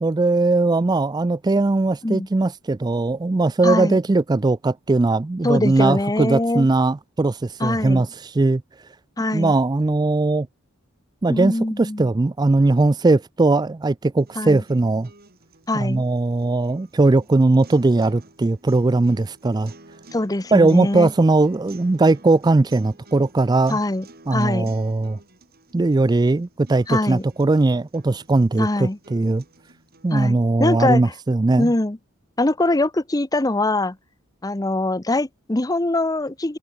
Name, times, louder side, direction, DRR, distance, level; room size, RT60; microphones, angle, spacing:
voice 1, 0.0-8.6 9.3-10.5 11.2-15.1 15.7-19.7 20.5-23.8 24.3-25.2 25.7-29.4 30.0-31.7, right 2 dB, 20° right, 0.4 m, -19 dB
voice 2, 3.6-4.0 5.4-6.7 7.6-8.0 9.2-9.5 11.3-12.1 14.4-14.6 15.7-16.0 20.1-21.1 23.7-24.1 24.3-24.7 26.9-27.2 28.6-29.0 30.1-31.1 31.6-32.0 32.4-34.0 34.4-36.6, left 2 dB, 15° left, 0.8 m, -23 dB
sound 1, 14.2-30.2, right 2 dB, 45° right, 6.2 m, -50 dB
head